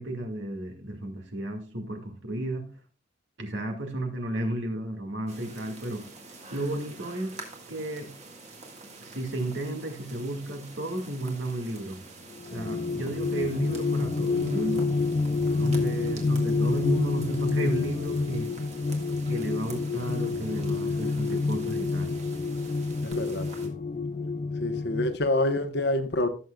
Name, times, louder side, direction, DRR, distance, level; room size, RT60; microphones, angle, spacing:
voice 1, 0.0-2.7 3.4-6.1 6.5-7.3 7.7-8.1 9.0-12.0 12.5-14.9 15.6-18.5 19.3-22.1, right 1 dB, 75° right, 2.2 m, -33 dB
sound 1, 5.3-23.7, right 3 dB, 35° right, 1.8 m, -47 dB
sound 2, 12.4-25.2, left 3 dB, 35° left, 0.4 m, -28 dB
voice 2, 23.0-23.7 24.6-26.3, left 1 dB, 60° left, 1.1 m, -27 dB
17.0 x 6.6 x 2.4 m
head